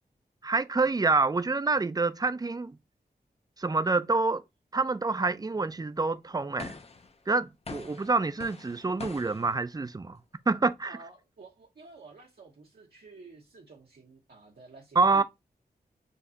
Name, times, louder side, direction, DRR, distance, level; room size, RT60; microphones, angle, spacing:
voice 1, 0.4-2.8 3.6-4.4 4.7-6.8 7.3-10.2 10.5-11.0 15.0-15.2, right 3 dB, 25° right, 0.4 m, -27 dB
sound 1, 6.6-7.2 7.7-9.6, left 4 dB, 40° left, 0.6 m, -43 dB
voice 2, 10.8-15.2, right 4 dB, 70° right, 1.0 m, -51 dB
6.4 x 2.3 x 2.8 m
cardioid pair, 45°, 17 cm